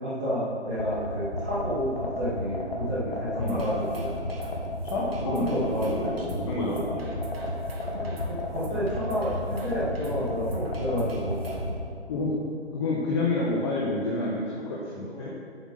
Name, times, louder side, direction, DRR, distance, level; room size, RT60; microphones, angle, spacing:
voice 1, 0.0-4.2 5.0-5.9 7.9-11.4 14.6-14.7 15.0-15.3, equal, 5° right, -13 dB, 0.6 m, -30 dB
sound 1, 0.8-11.7, left 2 dB, 55° left, 2.3 m, -32 dB
sound 2, 3.4-11.8, right 1 dB, 60° right, 2.1 m, -40 dB
voice 2, 4.9-5.5 5.8-7.1 12.1-12.3 12.7-15.3, left 2 dB, 25° left, -5 dB, 1.3 m, -29 dB
8.3 x 8.1 x 6.6 m, 2.3 s
figure-of-eight pair, 150°, 34 cm